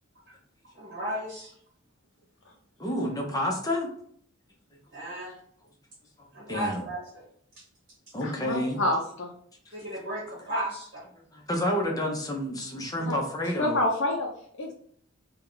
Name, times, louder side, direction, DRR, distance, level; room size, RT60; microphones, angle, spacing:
voice 1, 0.7-1.5 4.9-5.4 6.3-7.0 7.6-7.7 9.7-11.0, right 1 dB, 45° right, -3 dB, 1.1 m, -34 dB
voice 2, 2.8-3.9 6.2-6.8 8.1-8.8 11.3-13.8, left 1 dB, 20° left, 0 dB, 0.7 m, -29 dB
voice 3, 8.2-9.3 13.0-13.2 13.6-14.3 14.6-14.7, left 1 dB, 60° left, -1 dB, 0.5 m, -27 dB
3.5 x 2.3 x 3.8 m, 0.64 s
head